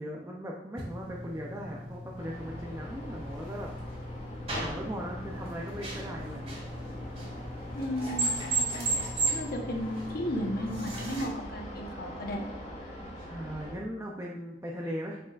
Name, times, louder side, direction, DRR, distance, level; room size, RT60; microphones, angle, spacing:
voice 1, 0.0-3.7 4.6-6.5 13.2-15.2, equal, 15° right, -2 dB, 0.5 m, -38 dB
sound 1, 0.7-11.2, right 2 dB, 35° right, 2.1 m, -36 dB
sound 2, 2.2-13.7, left 1 dB, 35° left, 1.4 m, -42 dB
voice 2, 7.7-12.4, equal, 55° left, 2 dB, 0.9 m, -35 dB
6.4 x 6.1 x 2.4 m, 0.99 s
head